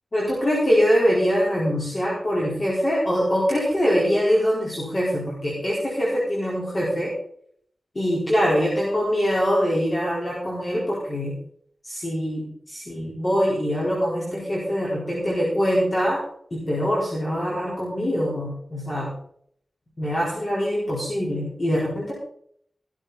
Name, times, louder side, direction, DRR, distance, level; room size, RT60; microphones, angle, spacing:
voice 1, 0.1-7.1 7.9-11.3 11.8-16.2 16.5-19.1 20.0-22.1, equal, 40° left, -6 dB, 4.3 m, -23 dB
15.0 x 12.5 x 4.1 m, 0.65 s
wide cardioid pair, 95°, 0 cm